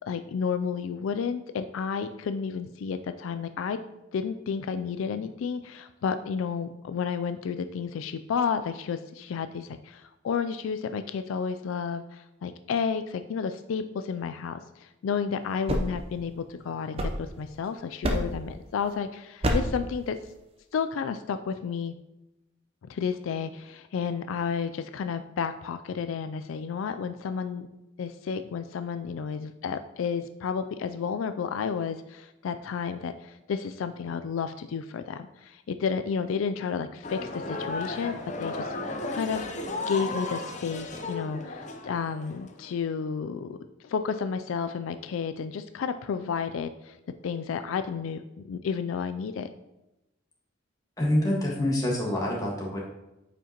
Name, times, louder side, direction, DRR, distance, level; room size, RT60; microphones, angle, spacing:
voice 1, 0.1-3.8 4.1-20.2 20.7-21.9 22.9-27.7 28.0-38.7 39.1-39.5 39.9-43.6 43.8-47.0 47.2-49.5 51.5-51.6, left 6 dB, 80° left, 10 dB, 0.3 m, -31 dB
sound 1, 15.4-17.6 18.0-18.5 19.4-19.9, equal, 30° right, 0.7 m, -29 dB
sound 2, 37.0-42.8, left 2 dB, 35° left, 0.6 m, -35 dB
voice 2, 51.0-52.8, left 1 dB, 15° left, -3 dB, 1.5 m, -26 dB
8.8 x 5.0 x 2.9 m, 0.94 s
head